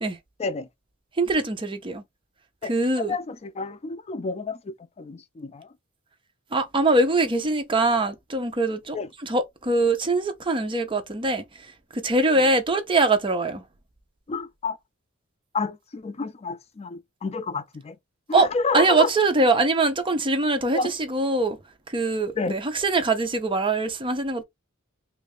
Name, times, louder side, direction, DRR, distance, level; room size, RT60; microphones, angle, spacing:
voice 1, 1.2-2.0 2.6-3.2 6.5-9.0 9.2-11.4 11.9-13.6 18.3-18.5 18.7-21.6 21.9-24.4, right 2 dB, 25° right, 0.6 m, -23 dB
voice 2, 3.0-5.7 8.9-9.1 14.3-14.8 15.5-18.0 18.3-19.1 20.7-20.9 22.4-22.6, left 4 dB, 30° left, 0.4 m, -30 dB
3.2 x 2.4 x 3.4 m
head